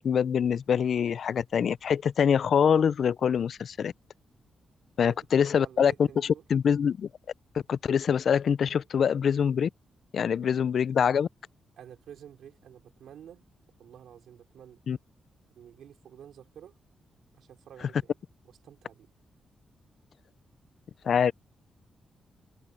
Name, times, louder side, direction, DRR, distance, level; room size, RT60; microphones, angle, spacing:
voice 1, 0.0-3.9 5.0-7.1 7.5-9.7 10.1-11.3 14.9-15.0 21.0-21.3, left 7 dB, 55° left, 0.3 m, -25 dB
voice 2, 5.0-6.5 10.4-10.5 11.8-13.5 13.8-14.8 15.6-16.8 17.3-18.2 18.4-19.1, right 9 dB, 85° right, 4.6 m, -50 dB
wide cardioid pair, 160°, 0 cm